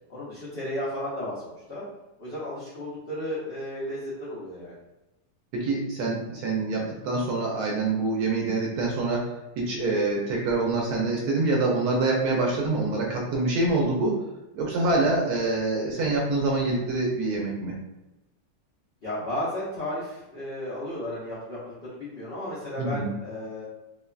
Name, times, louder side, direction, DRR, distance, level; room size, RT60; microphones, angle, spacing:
voice 1, 0.1-1.8 2.2-4.7 19.0-23.6, left 1 dB, 65° left, -9 dB, 0.6 m, -34 dB
voice 2, 5.5-14.2 14.5-17.8 22.8-23.1, right 3 dB, 70° right, -2 dB, 1.0 m, -26 dB
2.9 x 2.2 x 2.3 m, 1.0 s
omnidirectional pair, 1.9 m